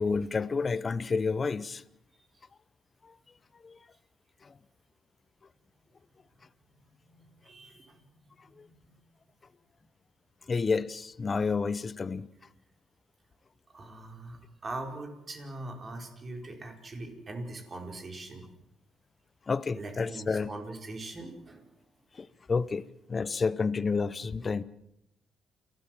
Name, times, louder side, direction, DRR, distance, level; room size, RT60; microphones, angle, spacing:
voice 1, 0.0-1.8 3.0-3.1 3.6-3.8 4.4-4.5 8.6-8.7 10.5-12.3 19.5-20.5 22.1-24.6, left 4 dB, 35° left, 0.9 m, -30 dB
voice 2, 7.4-7.9 8.6-8.9 13.7-18.5 19.7-21.6, right 2 dB, 35° right, 5.0 m, -41 dB
29.0 x 12.5 x 7.7 m
cardioid pair, 90°, 0 cm